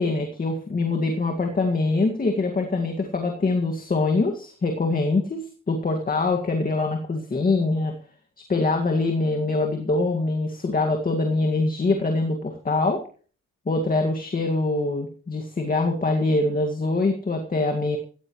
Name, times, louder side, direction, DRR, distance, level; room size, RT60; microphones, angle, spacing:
voice 1, 0.0-7.9 8.5-13.0 13.7-18.0, left 3 dB, 30° left, 3 dB, 2.0 m, -24 dB
17.0 x 15.0 x 3.2 m, 0.41 s
cardioid pair, 90°, 30 cm